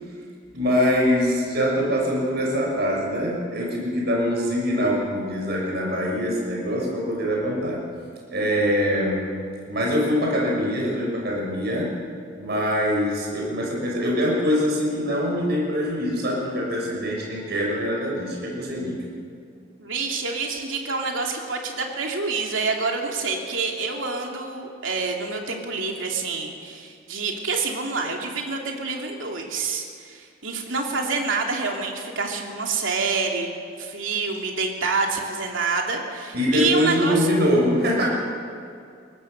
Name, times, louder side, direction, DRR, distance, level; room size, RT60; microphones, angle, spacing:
voice 1, 0.5-7.8 8.3-9.3 9.6-11.9 12.4-19.0 36.3-38.1, equal, 60° right, -2 dB, 6.3 m, -23 dB
voice 2, 19.8-33.5 33.8-37.3, right 4 dB, 80° right, 1 dB, 2.8 m, -27 dB
23.0 x 18.5 x 6.6 m, 2.3 s
head